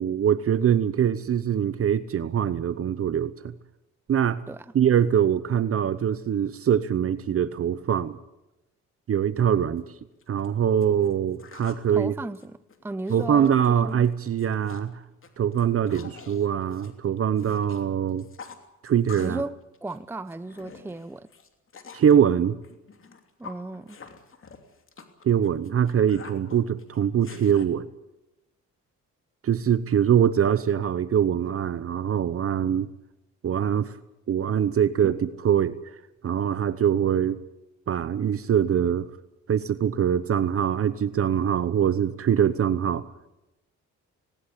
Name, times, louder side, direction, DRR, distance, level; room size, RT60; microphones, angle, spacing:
voice 1, 0.0-3.5 4.1-4.4 4.7-8.2 9.1-9.9 10.3-12.1 13.1-15.0 15.4-18.3 18.8-19.4 21.9-22.6 25.2-27.9 29.4-32.9 33.4-33.9 34.3-35.9 36.2-37.4 37.9-39.1 39.5-43.0, right 9 dB, 50° right, 14 dB, 0.9 m, -23 dB
sound 1, 9.8-9.9 10.2-11.9 12.2-13.6 13.9-14.1 14.4-14.9 15.2-17.8 18.1-19.5 19.7-22.1 22.6-27.6, left 5 dB, 45° left, 3.0 m, -47 dB
voice 2, 11.9-14.1 19.2-21.3 23.4-24.0, right 2 dB, 5° right, 13 dB, 0.7 m, -35 dB
19.5 x 18.5 x 8.4 m, 0.95 s
cardioid pair, 90°, 30 cm